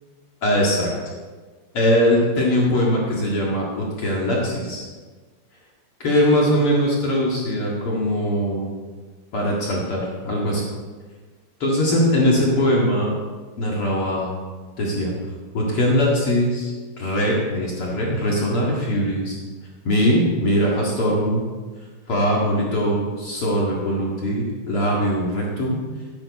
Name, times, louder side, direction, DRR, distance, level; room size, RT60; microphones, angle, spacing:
voice 1, 0.4-0.9 1.7-4.9 6.0-8.7 9.3-10.6 11.6-13.1 13.6-14.3 14.8-15.1 15.5-16.7 17.0-19.4 19.8-21.4 22.1-25.8, equal, 65° left, -4 dB, 1.3 m, -21 dB
15.5 x 10.0 x 4.2 m, 1.4 s
omnidirectional pair, 5.9 m